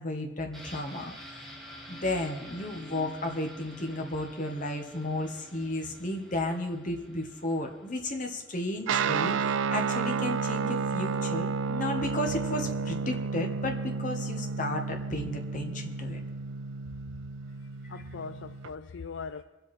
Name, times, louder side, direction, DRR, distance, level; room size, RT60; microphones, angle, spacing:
voice 1, 0.0-1.4 1.9-16.2, left 1 dB, 40° left, 1.5 m, -33 dB
sound 1, 0.5-10.2 10.5-10.6, equal, ahead, 2.2 m, -49 dB
Guitar, 8.9-18.7, right 5 dB, 75° right, 0.4 m, -31 dB
voice 2, 17.6-19.4, left 5 dB, 65° left, 0.4 m, -41 dB
23.5 x 8.1 x 4.4 m
head